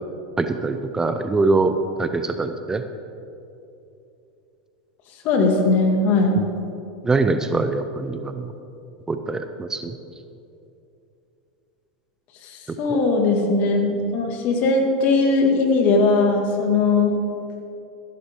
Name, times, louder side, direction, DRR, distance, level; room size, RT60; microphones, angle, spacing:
voice 1, 0.4-2.8 6.4-6.5 7.0-8.5 9.1-10.0 12.9-13.0, right 3 dB, 15° right, 8 dB, 0.6 m, -23 dB
voice 2, 5.2-6.4 12.4-17.2, left 3 dB, 50° left, 2 dB, 2.1 m, -19 dB
14.0 x 11.5 x 3.7 m, 2.8 s
hypercardioid pair, 100°, 4 cm